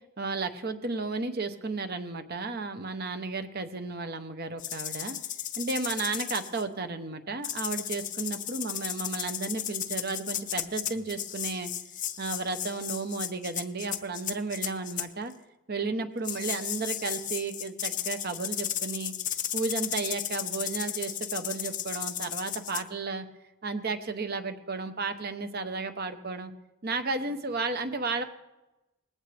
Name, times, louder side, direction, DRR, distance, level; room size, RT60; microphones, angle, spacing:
voice 1, 0.2-5.2 5.6-11.7 12.2-15.3 15.7-19.1 19.5-23.3 23.6-26.5 26.8-28.2, right 3 dB, 45° right, 8 dB, 1.0 m, -33 dB
sound 1, 4.6-6.6 7.4-15.1 16.2-22.8, left 11 dB, 35° left, 0.7 m, -34 dB
20.0 x 16.0 x 3.5 m, 0.98 s
head